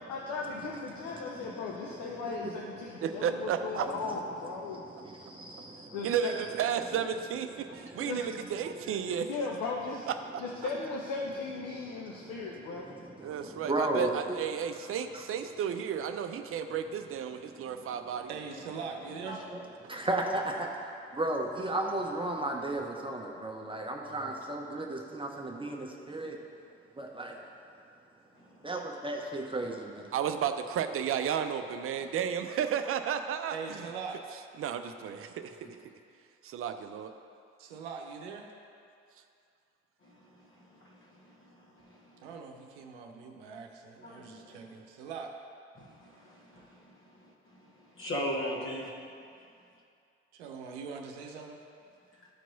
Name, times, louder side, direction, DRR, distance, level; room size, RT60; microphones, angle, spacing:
voice 1, 0.1-4.8 5.1-6.3 8.0-8.2 9.3-10.1 10.4-12.9, left 4 dB, 55° left, -1 dB, 0.9 m, -37 dB
voice 2, 0.9-2.5 2.8-3.2 4.1-4.2 4.6-6.0 7.7-8.1 9.3-9.4 11.7-14.4 15.1-15.2 17.5-17.9 19.5-26.4 27.0-27.4 28.6-30.1, right 2 dB, 15° right, 0 dB, 0.9 m, -36 dB
voice 3, 3.0-3.9 5.4-9.3 10.1-10.4 13.2-18.3 30.1-33.9 34.6-35.7 36.4-37.1, right 8 dB, 40° right, 8 dB, 0.6 m, -33 dB
voice 4, 18.3-19.5 33.5-34.2 37.6-38.5 42.2-45.3 50.4-51.6, right 5 dB, 70° right, 2 dB, 0.8 m, -42 dB
voice 5, 28.4-28.7 35.6-35.7 40.0-42.3 44.0-44.6 45.7-48.9, equal, 35° left, -4 dB, 1.7 m, -41 dB
13.0 x 4.6 x 4.0 m, 2.4 s
figure-of-eight pair, 50°, 34 cm